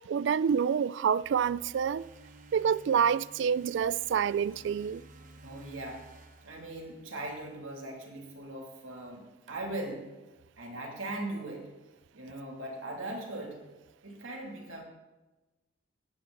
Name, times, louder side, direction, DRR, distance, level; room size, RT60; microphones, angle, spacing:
voice 1, 0.1-2.1 2.5-5.0, right 7 dB, 60° right, 0.3 m, -27 dB
sound 1, 1.2-7.4, right 2 dB, 40° right, 1.0 m, -54 dB
voice 2, 5.4-6.1 6.4-10.1 10.6-11.7 12.1-13.6 14.0-14.8, right 1 dB, 80° right, 2.7 m, -39 dB
17.5 x 9.4 x 3.9 m
head